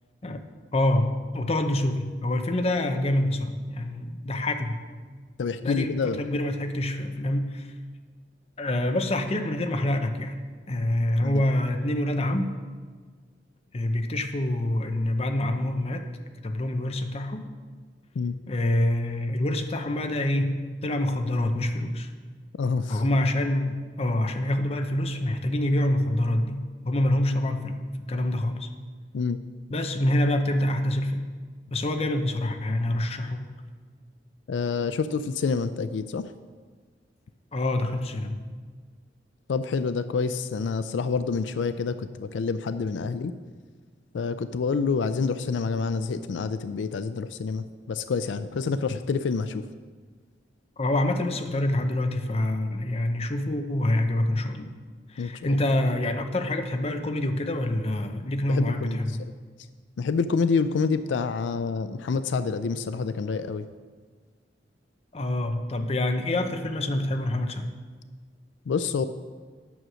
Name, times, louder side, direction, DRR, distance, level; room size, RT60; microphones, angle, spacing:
voice 1, 0.7-4.8 5.6-7.7 8.6-10.4 10.7-12.5 13.7-16.1 16.4-17.5 18.5-22.1 22.9-28.7 29.7-31.2 31.7-33.5 37.5-38.4 50.8-54.7 55.1-59.2 65.1-67.7, left 1 dB, 35° left, 6 dB, 0.7 m, -26 dB
voice 2, 5.4-6.2 11.2-11.4 18.2-18.4 22.6-23.0 29.1-29.4 34.5-36.2 39.5-43.3 44.1-49.6 55.2-55.6 58.5-59.0 60.0-63.7 68.7-69.1, left 5 dB, 85° left, 12 dB, 0.4 m, -27 dB
9.3 x 6.3 x 6.2 m, 1.5 s
head